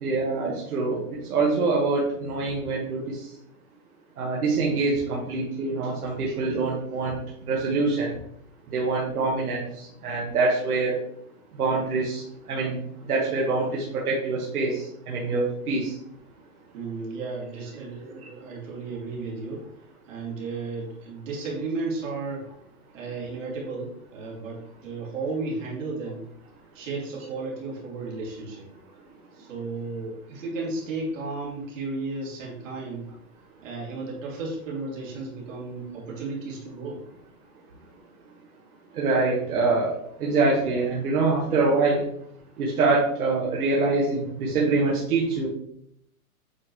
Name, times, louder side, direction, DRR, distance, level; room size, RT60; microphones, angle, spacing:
voice 1, 0.0-3.2 4.2-7.2 7.5-8.1 8.7-11.0 11.5-12.8 13.0-15.9 38.9-39.9 40.2-42.0 42.6-45.5, right 3 dB, 75° right, -3 dB, 1.8 m, -25 dB
voice 2, 16.7-19.6 20.0-22.5 22.9-26.2 26.7-28.7 29.3-33.1 33.6-37.0, right 3 dB, 55° right, -3 dB, 2.7 m, -34 dB
8.5 x 3.9 x 3.1 m, 0.70 s
hypercardioid pair, 170°, 44 cm